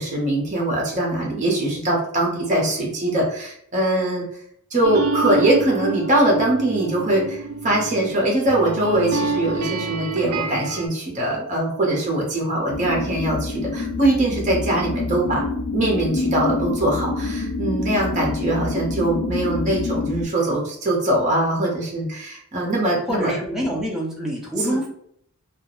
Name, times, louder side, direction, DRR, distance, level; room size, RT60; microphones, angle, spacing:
voice 1, 0.0-4.2 4.7-23.3 24.6-24.8, right 1 dB, 35° right, -2 dB, 0.7 m, -22 dB
sound 1, 4.8-10.9, right 3 dB, 80° right, 0.4 m, -27 dB
sound 2, 12.7-20.2, left 3 dB, 55° left, 0.3 m, -27 dB
voice 2, 23.1-24.9, equal, ahead, -3 dB, 0.5 m, -26 dB
2.3 x 2.0 x 2.9 m, 0.66 s
head